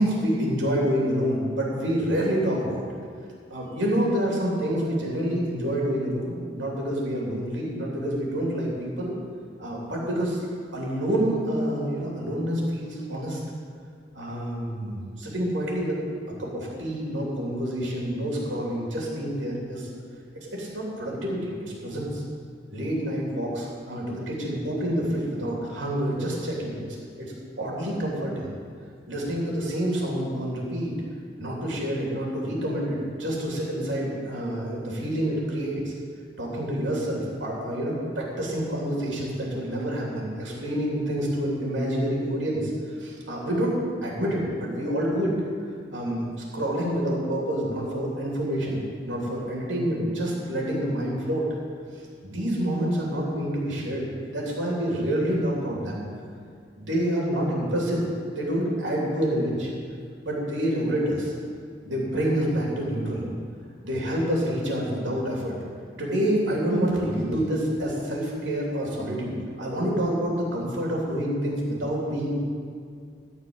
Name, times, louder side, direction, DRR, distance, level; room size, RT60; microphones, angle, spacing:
voice 1, 0.0-2.9 3.5-9.1 9.6-10.4 10.7-13.4 14.1-16.0 16.4-19.9 20.3-22.2 22.7-26.9 27.2-27.3 27.6-28.5 29.1-30.9 31.4-35.8 36.4-42.7 43.0-43.7 44.0-45.3 45.9-46.2 46.5-51.5 52.2-56.0 56.8-58.0 58.3-59.7 60.2-61.3 61.8-63.3 63.8-65.6 66.0-72.4, equal, 90° right, -3 dB, 3.1 m, -27 dB
14.0 x 4.7 x 8.9 m, 2.2 s
head